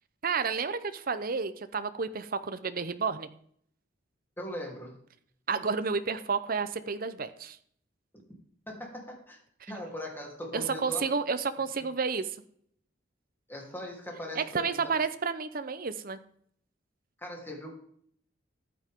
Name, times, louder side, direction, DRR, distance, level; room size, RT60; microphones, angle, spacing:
voice 1, 0.2-3.3 5.5-7.6 10.5-12.3 14.3-16.2, right 5 dB, 50° right, 11 dB, 0.7 m, -31 dB
voice 2, 4.4-5.0 8.7-9.4 9.7-11.1 13.5-15.0 17.2-17.7, left 1 dB, 10° left, -1 dB, 3.3 m, -40 dB
14.5 x 9.2 x 3.7 m, 0.63 s
head